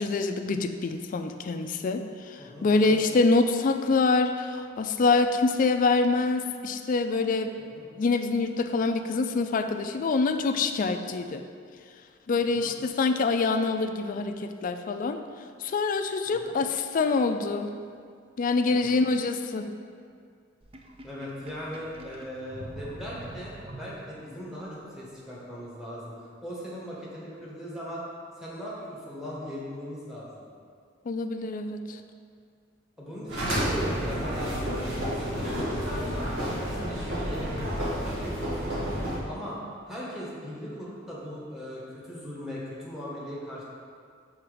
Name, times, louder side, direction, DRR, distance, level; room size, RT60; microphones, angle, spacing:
voice 1, 0.0-7.5 8.0-11.4 12.3-15.2 15.6-17.7 18.4-19.7 31.1-32.0, left 3 dB, 45° left, 7 dB, 0.3 m, -25 dB
voice 2, 2.4-3.0 7.6-7.8 12.5-12.7 16.3-16.6 18.7-19.1 21.0-28.0 28.4-30.4 33.0-37.7 38.0-38.9 39.3-39.6 39.9-43.6, equal, 5° right, -7 dB, 1.4 m, -39 dB
Sink (filling or washing), 20.6-24.4, right 1 dB, 30° right, 0.5 m, -44 dB
sound 1, 33.3-39.2, equal, 75° right, 1.5 m, -30 dB
6.0 x 3.9 x 4.9 m, 2.2 s
head